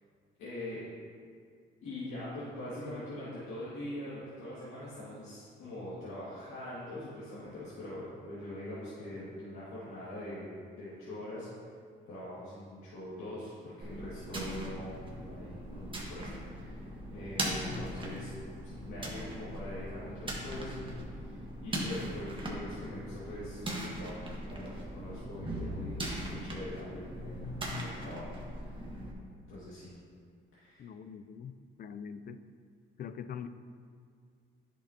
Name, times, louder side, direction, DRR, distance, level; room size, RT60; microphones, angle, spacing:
voice 1, 0.4-0.8 1.8-11.5 12.1-16.8 17.1-18.3 18.6-26.0 26.3-27.4 27.8-28.3 28.6-28.9 29.5-29.9 30.5-30.8, left 1 dB, 85° left, -11 dB, 2.1 m, -43 dB
sound 1, 13.8-29.1, right 1 dB, 25° right, 1.5 m, -39 dB
voice 2, 30.8-32.4 33.0-33.5, left 7 dB, 50° left, 11 dB, 0.4 m, -43 dB
10.0 x 6.2 x 2.9 m, 2.1 s
cardioid pair, 90°, 20 cm